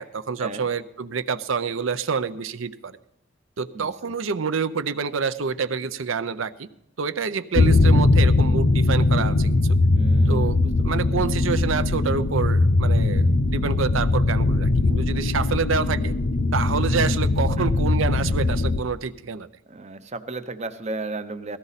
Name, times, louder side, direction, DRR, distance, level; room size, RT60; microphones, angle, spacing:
voice 1, 0.0-3.0 3.6-6.7 7.0-9.8 10.3-10.6 10.8-16.1 16.5-19.5, right 5 dB, 70° right, 12 dB, 0.6 m, -27 dB
voice 2, 3.7-4.1 9.9-10.9 19.7-21.6, right 3 dB, 30° right, 11 dB, 0.7 m, -34 dB
sound 1, 7.6-18.8, left 2 dB, 65° left, 0.6 m, -20 dB
17.0 x 14.0 x 4.1 m, 0.86 s
head